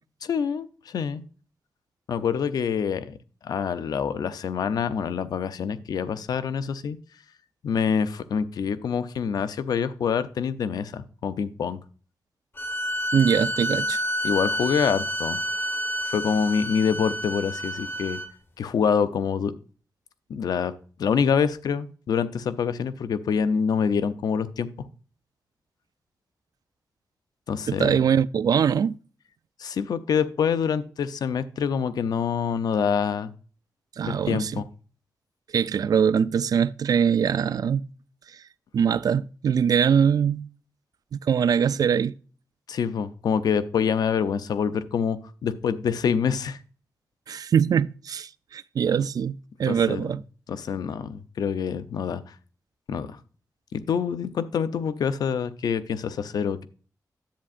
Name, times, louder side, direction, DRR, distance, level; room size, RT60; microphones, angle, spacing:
voice 1, 0.2-1.2 2.1-3.1 3.4-7.0 7.6-11.8 14.2-15.4 16.1-18.2 18.6-19.5 20.3-20.7 21.0-24.7 27.5-28.0 29.6-33.3 34.0-34.7 42.7-46.6 49.7-50.1 50.5-52.2 52.9-53.1 53.7-56.7, left 7 dB, 90° left, 0.6 m, -26 dB
sound 1, 12.6-18.3, equal, 35° left, 1.3 m, -29 dB
voice 2, 13.1-14.0 27.7-29.0 34.0-34.6 35.5-37.8 38.7-40.5 41.1-42.2 47.3-50.2, right 7 dB, 75° right, 0.4 m, -22 dB
10.5 x 8.3 x 2.5 m
cardioid pair, 75°, 7 cm